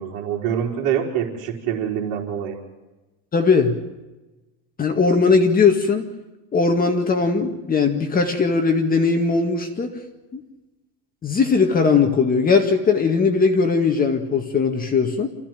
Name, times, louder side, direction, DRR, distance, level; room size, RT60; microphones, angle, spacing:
voice 1, 0.0-2.6, right 9 dB, 60° right, -5 dB, 4.4 m, -25 dB
voice 2, 3.3-3.8 4.8-6.1 6.5-10.0 10.3-10.4 11.2-15.3, left 4 dB, 20° left, 5 dB, 1.9 m, -19 dB
28.0 x 16.0 x 9.2 m, 1.1 s
cardioid pair, 155°, 42 cm